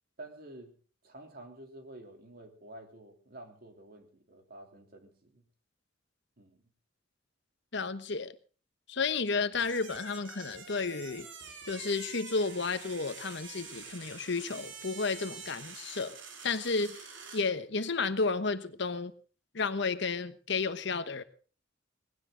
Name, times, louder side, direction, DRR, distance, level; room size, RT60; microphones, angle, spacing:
voice 1, 0.2-0.8 1.0-5.4 6.4-6.6, right 1 dB, 55° right, 3.3 m, -50 dB
voice 2, 7.7-8.3 8.9-11.3 11.7-16.2 16.4-17.0 17.3-19.1 19.5-21.2, left 4 dB, 65° left, 1.1 m, -32 dB
sound 1, 9.5-17.5, right 5 dB, 70° right, 3.4 m, -47 dB
19.5 x 16.5 x 3.9 m
head